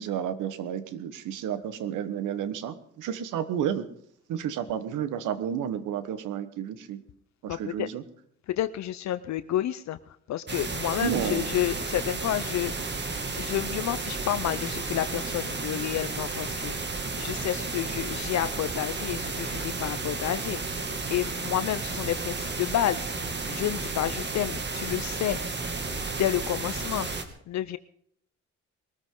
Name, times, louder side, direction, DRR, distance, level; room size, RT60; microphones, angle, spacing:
voice 1, 0.0-3.9 4.3-7.0 7.4-8.0 11.0-11.5, right 9 dB, 90° right, 12 dB, 1.4 m, -31 dB
voice 2, 7.5-7.9 8.6-10.0 10.3-12.7 13.4-23.0 23.5-25.4 26.2-27.1 27.5-27.8, left 12 dB, 65° left, 13 dB, 0.7 m, -30 dB
sound 1, 10.5-27.2, right 3 dB, 35° right, 2.3 m, -33 dB
22.0 x 14.0 x 3.8 m, 0.67 s
cardioid pair, 90°, 30 cm